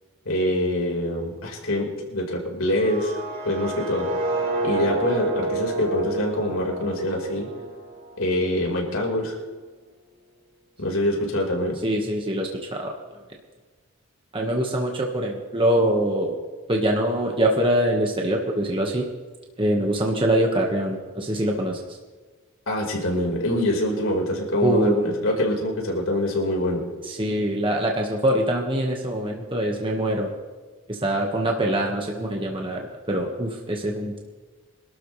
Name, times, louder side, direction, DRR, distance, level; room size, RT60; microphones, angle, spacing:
voice 1, 0.2-3.2 3.4-4.1 4.6-7.5 8.2-9.4 10.8-11.8 22.7-26.8, left 1 dB, 75° left, -1 dB, 4.7 m, -24 dB
sound 1, 2.7-8.6, right 2 dB, 60° right, 5.2 m, -29 dB
voice 2, 11.8-12.9 14.3-16.3 16.7-19.0 19.6-21.8 24.6-25.0 27.0-30.3 30.9-32.8 33.1-34.2, right 1 dB, 25° right, 0 dB, 1.6 m, -24 dB
26.0 x 13.0 x 3.4 m, 1.3 s
head